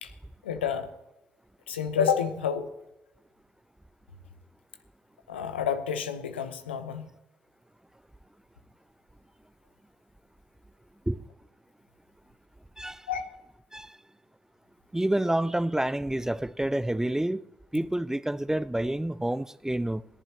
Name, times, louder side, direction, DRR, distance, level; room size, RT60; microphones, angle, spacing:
voice 1, 0.4-0.9 1.7-2.7 5.3-7.1 13.1-13.2, left 7 dB, 85° left, 0.8 m, -29 dB
voice 2, 12.8-13.1 13.7-14.0 14.9-17.4 17.7-20.0, right 1 dB, 10° right, 0.5 m, -28 dB
28.0 x 11.0 x 2.9 m
figure-of-eight pair, 40°, 6 cm